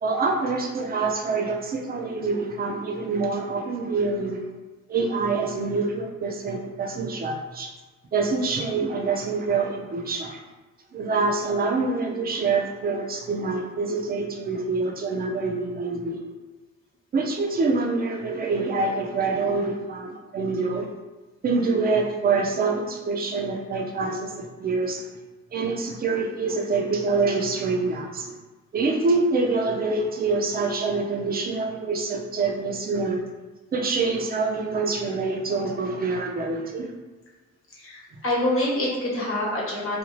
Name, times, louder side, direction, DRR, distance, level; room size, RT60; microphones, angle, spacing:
voice 1, 0.0-4.4 4.9-7.7 8.1-10.4 10.9-16.2 17.1-20.9 21.4-25.0 25.5-28.4 28.7-33.2 33.7-36.9, right 3 dB, 30° right, 2 dB, 0.5 m, -26 dB
voice 2, 37.8-40.0, left 1 dB, 45° left, -3 dB, 1.0 m, -26 dB
2.5 x 2.3 x 3.1 m, 1.2 s
cardioid pair, 90°, 30 cm